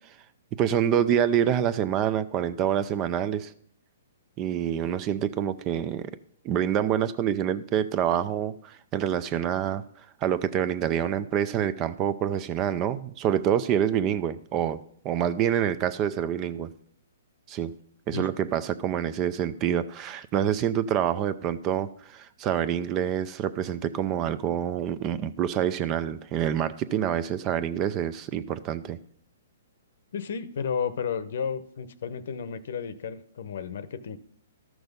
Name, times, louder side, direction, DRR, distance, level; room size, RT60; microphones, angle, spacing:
voice 1, 0.5-3.5 4.4-6.1 6.4-9.8 10.2-16.7 17.5-17.7 18.1-29.0, right 9 dB, 25° right, 14 dB, 0.5 m, -27 dB
voice 2, 30.1-34.2, left 6 dB, 65° left, 14 dB, 0.9 m, -32 dB
13.0 x 6.2 x 5.3 m, 0.62 s
hypercardioid pair, 155°, 0 cm